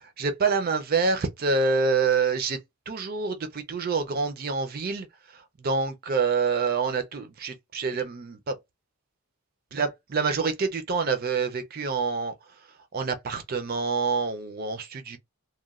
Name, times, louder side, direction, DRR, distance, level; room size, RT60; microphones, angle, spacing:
voice 1, 0.0-2.6 2.9-5.1 5.3-8.5 9.7-12.3 12.9-15.2, right 4 dB, 45° right, 0.4 m, -27 dB
3.0 x 2.1 x 2.3 m
head